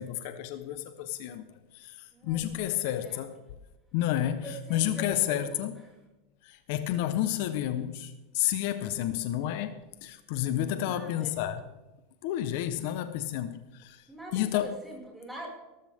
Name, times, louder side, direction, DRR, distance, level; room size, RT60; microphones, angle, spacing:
voice 1, 0.0-3.3 3.9-5.7 6.4-11.6 12.2-14.0 14.3-14.8, left 12 dB, 65° left, 10 dB, 1.1 m, -31 dB
voice 2, 2.1-3.2 4.4-5.6 10.6-11.3 14.1-15.5, right 1 dB, 5° right, -2 dB, 5.8 m, -44 dB
17.5 x 14.5 x 3.7 m, 1.1 s
supercardioid pair, 135°, 0 cm